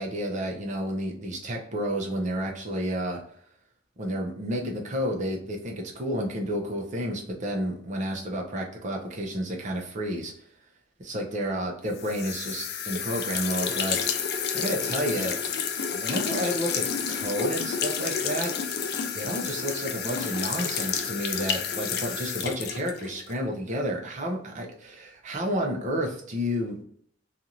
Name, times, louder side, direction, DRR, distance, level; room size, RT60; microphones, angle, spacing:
voice 1, 0.0-3.2 4.0-10.3 11.0-15.4 15.9-18.5 19.1-26.8, equal, 40° right, 1 dB, 0.7 m, -31 dB
sound 1, 12.0-23.4, left 7 dB, 60° left, 0.4 m, -30 dB
2.6 x 2.4 x 2.9 m, 0.64 s
head